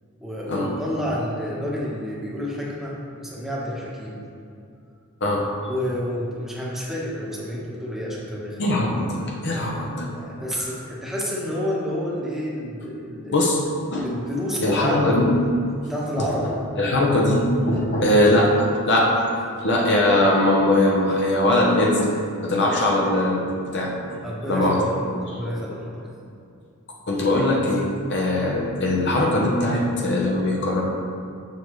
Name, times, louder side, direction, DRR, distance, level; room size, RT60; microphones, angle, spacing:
voice 1, 0.2-4.2 5.7-8.6 10.1-13.5 14.0-15.3 15.8-16.6 19.6-19.7 24.2-26.0, equal, ahead, -6 dB, 1.2 m, -29 dB
voice 2, 8.6-10.1 10.6-10.7 13.3-13.6 13.9-14.1 14.6-15.3 15.8-15.9 16.2-16.3 16.8-19.2 19.6-22.1 22.4-23.9 24.5-24.8 27.1-30.8, left 1 dB, 55° left, -2 dB, 0.9 m, -21 dB
6.9 x 6.9 x 3.2 m, 2.5 s
head